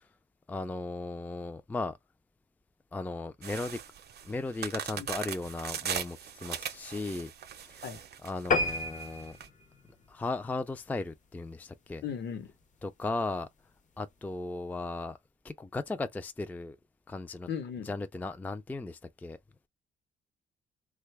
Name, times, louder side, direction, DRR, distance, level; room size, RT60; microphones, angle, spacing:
voice 1, 0.5-2.0 2.9-3.8 4.2-7.3 7.6-7.8 8.2-9.4 10.1-12.0 12.8-13.5 14.0-15.2 15.4-16.8 17.1-17.5 17.8-19.4, left 3 dB, 10° left, 0.3 m, -36 dB
sound 1, 3.4-9.5, right 8 dB, 55° right, 0.6 m, -39 dB
sound 2, 8.5-11.3 11.7-11.9 12.4-12.5 12.8-12.9 13.1-13.2, left 3 dB, 40° left, 0.7 m, -32 dB
voice 2, 12.0-12.5 17.5-17.9, left 7 dB, 60° left, 1.0 m, -37 dB
2.9 x 2.2 x 3.3 m
cardioid pair, 90°, 20 cm